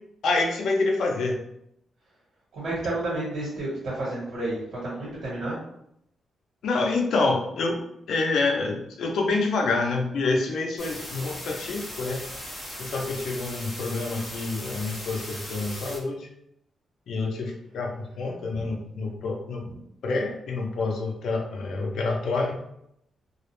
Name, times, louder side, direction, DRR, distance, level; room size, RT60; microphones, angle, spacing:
voice 1, 0.2-1.4 6.6-7.8 8.1-12.2 12.8-16.3 17.1-19.6 20.0-22.6, left 3 dB, 70° left, 1 dB, 0.5 m, -27 dB
voice 2, 2.5-5.6 19.6-19.8, right 2 dB, 60° right, -6 dB, 1.3 m, -31 dB
sound 1, 10.8-16.0, equal, 10° left, 1.0 m, -38 dB
2.3 x 2.0 x 3.0 m, 0.76 s
wide cardioid pair, 165°, 0 cm